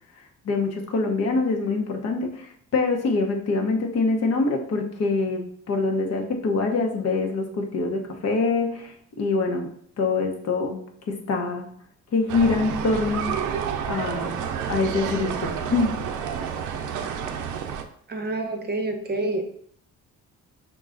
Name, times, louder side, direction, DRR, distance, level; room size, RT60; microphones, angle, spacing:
voice 1, 0.4-8.9 9.2-10.8 11.1-11.7 12.1-13.4 13.9-14.4 14.7-16.0, left 3 dB, 55° left, 3 dB, 0.9 m, -25 dB
sound 1, 12.3-17.8, right 7 dB, 85° right, 0.5 m, -30 dB
voice 2, 18.1-19.4, right 2 dB, 35° right, 5 dB, 0.7 m, -27 dB
5.4 x 2.3 x 3.7 m, 0.63 s
cardioid pair, 90°, 30 cm